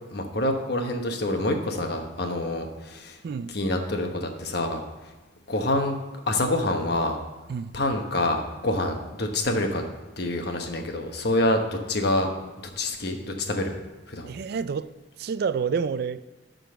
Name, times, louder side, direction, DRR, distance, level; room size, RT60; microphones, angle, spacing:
voice 1, 0.1-3.2 3.5-4.8 5.5-6.0 6.3-7.2 7.7-9.8 10.2-12.3 12.8-13.8 14.1-14.3, left 1 dB, 55° left, 1.1 m, -26 dB
voice 2, 3.2-3.6 7.5-7.8 14.3-14.9 15.2-16.2, right 6 dB, 55° right, 0.3 m, -28 dB
11.5 x 3.9 x 6.8 m
head